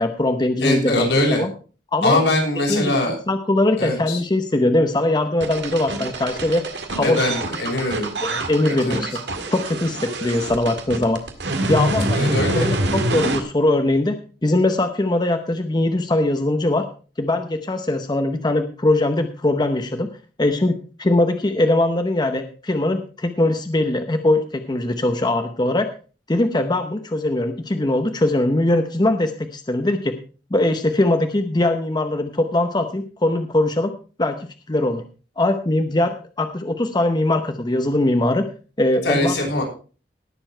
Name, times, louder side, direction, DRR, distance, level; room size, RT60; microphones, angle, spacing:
voice 1, 0.0-1.5 1.9-2.2 2.7-3.0 3.3-6.6 6.9-7.2 8.2-9.1 9.5-11.2 11.7-14.2 14.4-16.9 17.2-20.1 20.4-25.9 26.3-30.2 30.5-33.9 34.2-34.4 34.7-35.0 35.4-38.4 38.8-39.3, left 1 dB, 25° left, 7 dB, 0.8 m, -21 dB
voice 2, 0.6-1.4 2.0-3.2 3.8-4.2 7.0-8.1 8.6-9.0 12.1-12.7 39.0-39.6, left 1 dB, 85° left, -1 dB, 6.4 m, -22 dB
sound 1, 5.4-13.4, right 1 dB, 80° right, 1.9 m, -25 dB
18.0 x 7.0 x 4.5 m, 0.37 s
head